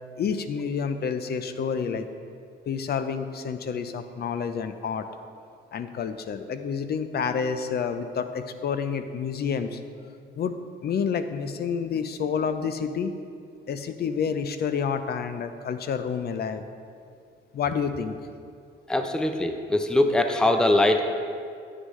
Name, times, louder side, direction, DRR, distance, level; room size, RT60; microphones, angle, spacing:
voice 1, 0.2-2.1 2.7-5.1 5.7-9.8 10.3-10.5 10.8-13.1 13.7-16.6 17.5-18.2, left 6 dB, 55° left, 9 dB, 0.6 m, -29 dB
voice 2, 18.9-21.0, left 1 dB, 5° left, 6 dB, 0.6 m, -22 dB
9.9 x 9.2 x 3.2 m, 2.3 s
cardioid pair, 90°, 20 cm